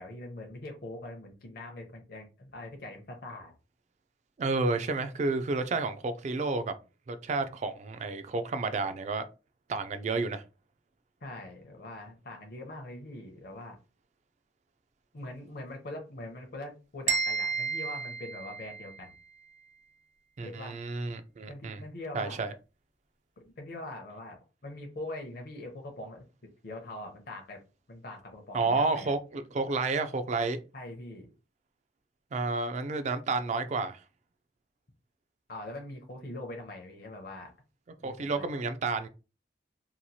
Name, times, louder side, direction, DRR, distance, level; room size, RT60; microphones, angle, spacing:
voice 1, 0.0-3.5 11.2-13.8 15.1-19.2 20.4-20.8 21.5-22.4 23.4-26.3 26.6-27.6 27.9-29.1 30.7-31.3 35.5-37.5 38.0-38.5, left 1 dB, 55° left, 0.6 m, -43 dB
voice 2, 4.4-6.7 7.1-9.2 9.7-10.4 20.4-21.8 22.1-22.5 28.5-30.6 32.3-34.0 38.0-39.1, right 3 dB, 40° right, 0.3 m, -30 dB
sound 1, 17.1-19.1, right 5 dB, 90° right, 0.8 m, -32 dB
2.9 x 2.3 x 2.7 m
head